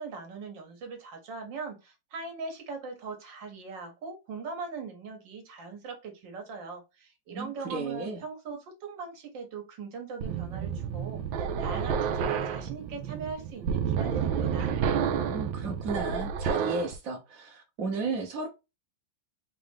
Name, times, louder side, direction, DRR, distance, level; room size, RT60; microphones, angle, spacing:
voice 1, 0.0-14.7, right 4 dB, 70° right, 1.7 m, -40 dB
voice 2, 7.3-8.2 15.2-18.5, right 3 dB, 55° right, 1.2 m, -34 dB
sound 1, 10.2-16.9, right 7 dB, 85° right, 1.4 m, -30 dB
4.7 x 2.5 x 3.5 m
omnidirectional pair, 2.1 m